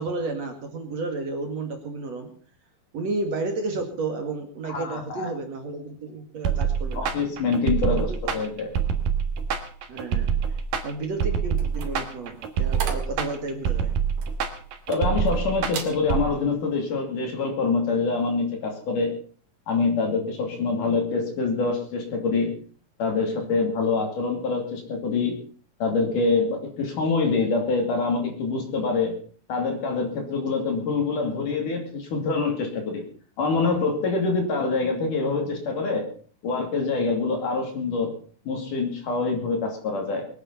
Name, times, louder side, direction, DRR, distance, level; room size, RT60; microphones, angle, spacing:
voice 1, 0.0-2.3 2.9-7.1 7.8-8.3 9.9-13.9, right 3 dB, 50° right, 4 dB, 3.0 m, -32 dB
voice 2, 4.6-5.3 6.9-8.7 14.9-19.2 19.7-22.5 23.0-25.4 25.8-29.2 29.5-33.1 33.4-36.1 36.4-38.2 38.5-40.3, left 4 dB, 60° left, 4 dB, 4.2 m, -25 dB
sound 1, 6.4-16.3, right 7 dB, 65° right, 3.2 m, -26 dB
sound 2, 11.5-15.3 15.7-16.0 16.5-16.7, right 7 dB, 85° right, 4.1 m, -38 dB
22.5 x 9.0 x 5.6 m, 0.44 s
omnidirectional pair, 4.2 m